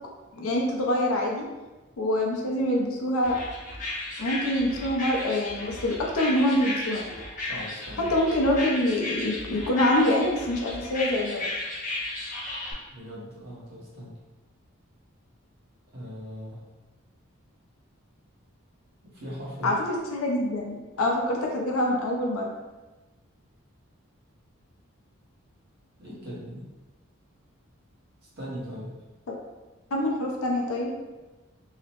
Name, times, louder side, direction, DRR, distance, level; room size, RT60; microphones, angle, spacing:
voice 1, 0.4-1.4 2.0-3.4 4.2-7.0 8.0-11.5 19.6-22.5 29.9-30.9, left 1 dB, 80° left, 0 dB, 0.5 m, -25 dB
sound 1, 3.2-12.7, left 2 dB, 35° left, 0.5 m, -35 dB
voice 2, 7.5-8.1 12.9-14.1 15.9-16.6 19.1-19.7 26.0-26.7 28.4-28.9, equal, 45° right, -7 dB, 0.9 m, -39 dB
2.7 x 2.0 x 2.8 m, 1.2 s
head